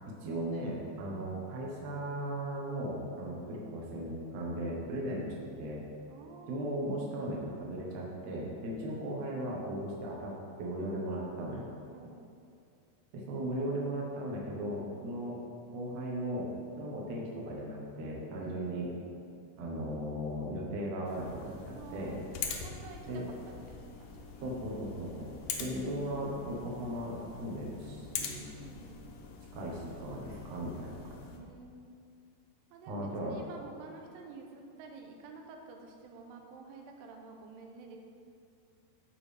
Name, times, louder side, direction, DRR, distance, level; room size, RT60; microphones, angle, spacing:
voice 1, 0.2-5.9 6.5-11.6 13.1-15.4 15.7-16.5 16.8-18.9 19.6-22.2 23.1-23.3 24.4-25.3 25.6-28.5 29.5-31.2 32.9-33.4, right 1 dB, 65° right, -3 dB, 1.7 m, -37 dB
voice 2, 6.1-6.8 11.9-12.2 18.3-18.7 21.7-22.3 22.5-24.4 25.4-25.9 28.6-29.1 31.3-32.0 32.7-38.0, right 4 dB, 85° right, 2 dB, 2.8 m, -50 dB
sound 1, 21.0-31.4, left 6 dB, 80° left, 2.1 m, -44 dB
14.0 x 4.8 x 3.5 m, 2.5 s
omnidirectional pair, 4.8 m